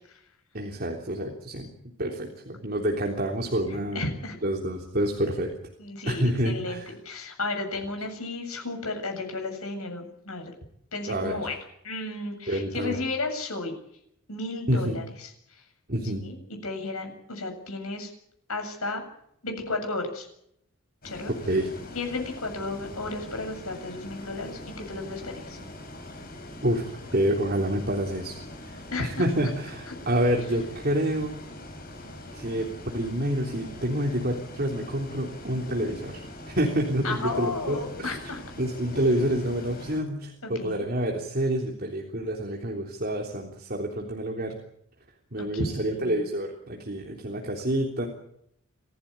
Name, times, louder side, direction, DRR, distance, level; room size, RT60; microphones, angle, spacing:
voice 1, 0.5-1.7 2.0-4.1 4.4-5.5 6.1-6.9 11.1-11.4 12.5-13.0 14.7-14.9 15.9-16.2 21.5-21.7 26.6-28.4 28.6-31.4 32.3-32.7 32.9-38.2 38.6-44.6 45.3-48.1, right 1 dB, 45° right, 0 dB, 3.5 m, -28 dB
voice 2, 3.9-4.4 5.8-10.5 10.9-11.5 11.8-13.7 14.3-15.6 16.2-18.1 18.5-19.1 19.4-20.3 21.0-21.3 21.9-25.6 28.9-29.5 29.9-30.0 37.0-38.4 39.1-39.2 40.4-40.9 45.4-46.2, left 2 dB, 90° left, 5 dB, 7.7 m, -33 dB
Bus, 21.0-40.0, left 1 dB, 45° left, 5.9 m, -43 dB
26.0 x 16.0 x 8.6 m, 0.74 s
head